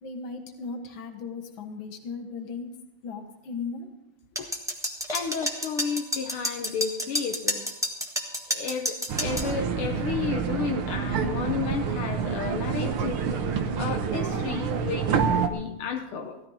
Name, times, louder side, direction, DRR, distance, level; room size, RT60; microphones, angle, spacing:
voice 1, 0.0-2.7 3.0-3.9, left 4 dB, 65° left, 5 dB, 2.2 m, -36 dB
sound 1, 4.4-9.5, equal, ahead, 1.2 m, -30 dB
voice 2, 5.1-7.7 8.5-13.2 13.8-16.4, left 6 dB, 85° left, 3 dB, 1.9 m, -32 dB
sound 2, 9.1-15.5, right 6 dB, 90° right, 1.9 m, -27 dB
16.5 x 13.0 x 4.1 m, 0.89 s
omnidirectional pair, 2.4 m